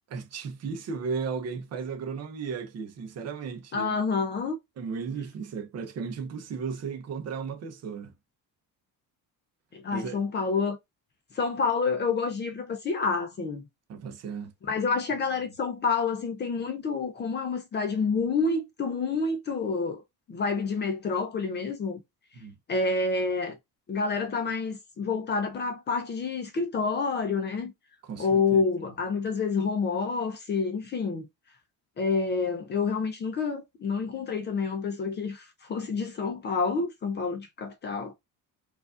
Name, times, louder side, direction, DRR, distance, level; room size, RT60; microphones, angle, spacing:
voice 1, 0.1-4.0 4.8-8.1 9.9-10.2 13.9-14.5 22.3-22.5 28.0-29.0, right 5 dB, 45° right, 0.8 m, -35 dB
voice 2, 3.7-4.6 9.7-10.8 11.3-13.6 14.7-20.0 20.3-22.0 22.7-23.6 23.9-27.7 28.2-31.3 32.0-38.1, left 4 dB, 30° left, 0.5 m, -28 dB
4.7 x 2.5 x 2.4 m
cardioid pair, 170°, 37 cm